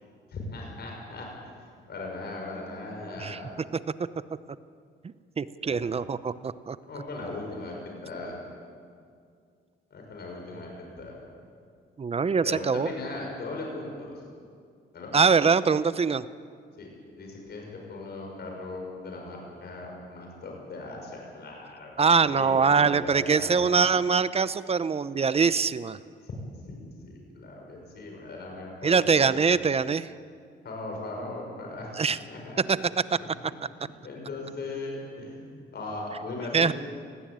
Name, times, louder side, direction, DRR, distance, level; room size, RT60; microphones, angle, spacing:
voice 1, 0.3-1.3 1.9-3.6 5.7-5.8 6.9-8.4 9.9-11.2 12.4-14.2 14.9-15.1 16.8-16.9 17.2-23.7 26.2-26.4 26.7-29.6 30.6-32.6 33.2-33.3 34.0-36.7, left 2 dB, 55° left, 0 dB, 6.0 m, -38 dB
voice 2, 5.4-6.8 12.0-12.9 15.1-16.2 22.0-26.0 28.8-30.1 32.0-32.2 32.7-33.0 36.5-36.7, right 5 dB, 30° right, 15 dB, 0.7 m, -23 dB
19.0 x 16.5 x 8.9 m, 2.2 s
cardioid pair, 90°, 20 cm